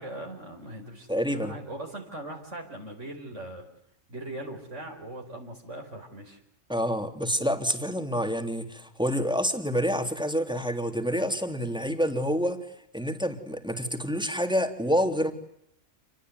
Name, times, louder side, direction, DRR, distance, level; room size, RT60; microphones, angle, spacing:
voice 1, 0.0-1.1 1.3-3.7 4.1-6.4, right 1 dB, 75° right, 1 dB, 4.9 m, -40 dB
voice 2, 1.1-1.5 6.7-12.7 12.9-15.3, equal, 5° right, 6 dB, 3.3 m, -27 dB
29.0 x 21.0 x 9.6 m, 0.74 s
omnidirectional pair, 1.3 m